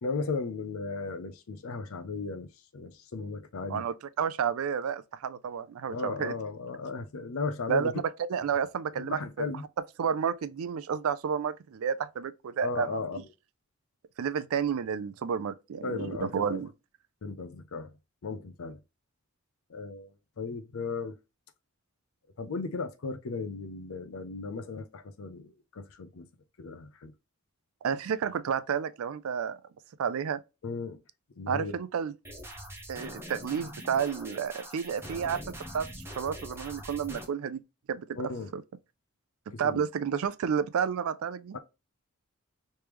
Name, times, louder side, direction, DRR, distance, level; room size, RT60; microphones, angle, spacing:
voice 1, 0.0-2.5 2.7-3.8 5.9-7.9 9.0-9.6 12.6-13.2 15.8-16.6 17.2-17.9 18.2-18.8 19.7-21.1 22.4-26.3 26.6-27.1 30.6-31.0 31.4-31.8 38.2-38.5 39.5-39.8 41.5-41.6, left 4 dB, 70° left, 0.5 m, -36 dB
voice 2, 3.7-6.3 7.7-9.5 10.0-13.0 14.2-16.7 27.8-29.6 30.0-30.4 31.5-32.1 32.9-35.4 35.7-35.9 36.2-37.6 37.9-38.2 38.5-38.6 39.5-41.6, right 7 dB, 70° right, 0.4 m, -31 dB
sound 1, 32.2-37.2, equal, 10° right, 0.6 m, -43 dB
3.2 x 3.1 x 3.3 m
head